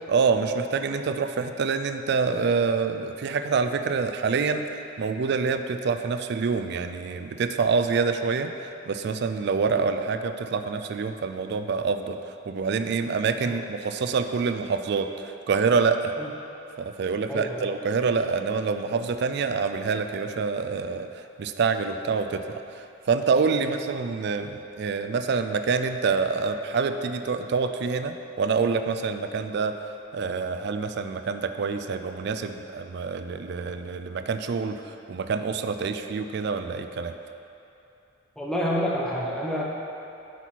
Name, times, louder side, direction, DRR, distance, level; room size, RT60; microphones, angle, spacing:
voice 1, 0.1-16.1 16.8-37.1, right 5 dB, 60° right, 9 dB, 0.4 m, -26 dB
voice 2, 17.3-17.7 23.6-23.7 38.4-39.6, equal, 5° left, -5 dB, 1.0 m, -28 dB
8.0 x 5.9 x 4.5 m, 2.8 s
head